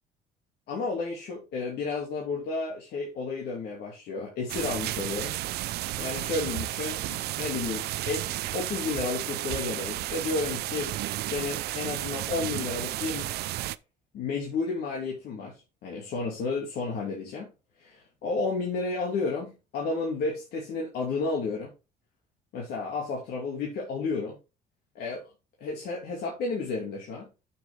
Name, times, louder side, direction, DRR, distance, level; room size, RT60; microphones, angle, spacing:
voice 1, 0.7-5.3 6.0-8.2 8.5-11.0 11.3-13.3 14.1-17.5 17.8-21.7 22.5-24.4 24.9-25.3 25.6-27.3, left 4 dB, 70° left, 2.5 m, -32 dB
sound 1, 4.5-13.8, right 16 dB, 75° right, 0.5 m, -33 dB
7.7 x 6.6 x 3.6 m
cardioid pair, 110°, 17 cm